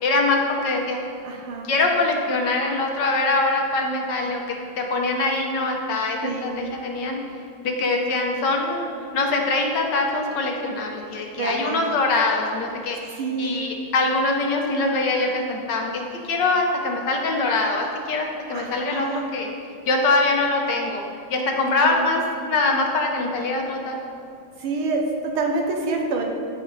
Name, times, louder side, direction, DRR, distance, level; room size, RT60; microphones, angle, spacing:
voice 1, 0.0-1.0 1.7-4.4 4.8-7.2 7.6-13.0 13.4-19.5 19.9-21.0 21.3-22.2 22.5-24.0, left 3 dB, 60° left, 1 dB, 1.5 m, -23 dB
voice 2, 1.2-1.7 6.2-6.5 11.4-11.8 13.2-13.6 18.5-19.3 21.8-22.1 24.6-26.2, right 3 dB, 90° right, 2 dB, 1.9 m, -27 dB
15.0 x 5.5 x 4.1 m, 2.4 s
omnidirectional pair, 2.3 m